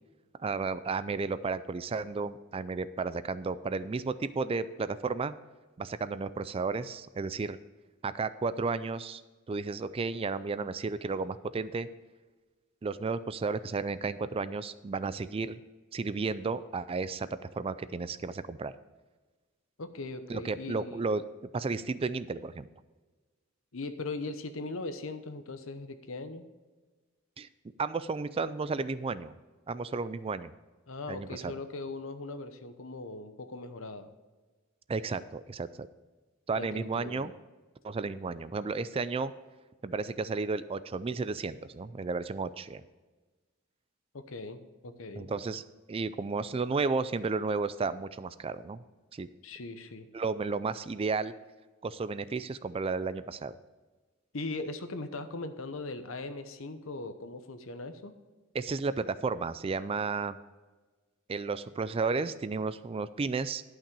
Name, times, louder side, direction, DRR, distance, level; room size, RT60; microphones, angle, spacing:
voice 1, 0.4-5.3 5.8-7.6 8.0-9.2 9.5-11.9 12.8-15.6 15.9-17.3 17.5-18.7 20.3-21.2 21.5-22.7 27.4-27.5 27.8-29.3 29.7-30.5 31.1-31.5 34.9-35.9 36.5-37.3 37.8-39.3 39.8-42.8 45.1-45.6 45.9-48.8 49.1-49.3 50.1-51.3 51.8-53.5 58.5-60.4 61.3-63.6, right 4 dB, 25° right, 15 dB, 0.3 m, -33 dB
voice 2, 19.8-21.0 23.7-26.5 30.9-34.1 36.6-37.3 44.1-45.3 49.4-50.1 54.3-58.1, left 3 dB, 70° left, 9 dB, 0.9 m, -39 dB
11.5 x 5.9 x 5.3 m, 1.3 s
head